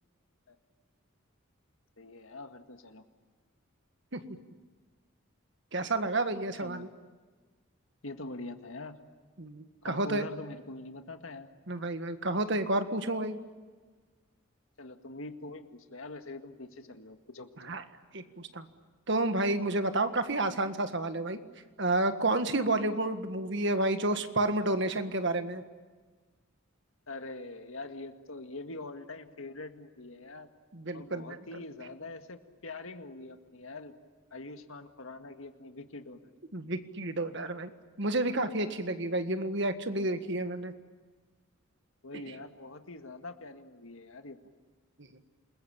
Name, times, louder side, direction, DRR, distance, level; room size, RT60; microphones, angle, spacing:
voice 1, 2.0-3.0 6.6-6.9 8.0-9.0 9.8-11.5 14.8-17.5 27.1-30.5 30.9-33.9 34.3-36.3 42.0-44.4, left 2 dB, 75° left, 7 dB, 1.9 m, -44 dB
voice 2, 5.7-6.9 9.4-10.2 11.7-13.4 17.6-17.8 18.1-18.7 19.1-21.4 21.8-25.6 30.7-31.4 36.5-37.7 38.0-40.7, right 2 dB, 55° right, 9 dB, 1.7 m, -30 dB
28.5 x 21.5 x 8.9 m, 1.4 s
head